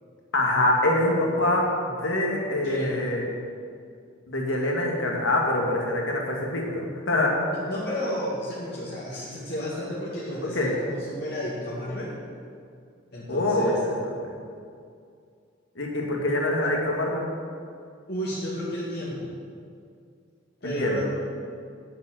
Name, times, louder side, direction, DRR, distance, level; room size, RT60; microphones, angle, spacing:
voice 1, 0.3-3.3 4.3-7.3 10.5-10.7 13.3-13.8 14.0-14.3 15.8-17.2 20.6-21.0, left 1 dB, 75° left, -1 dB, 2.2 m, -25 dB
voice 2, 2.6-3.0 7.5-12.1 13.1-13.8 18.1-19.3 20.6-21.0, equal, 55° left, -8 dB, 2.1 m, -32 dB
9.2 x 7.5 x 7.8 m, 2.3 s
head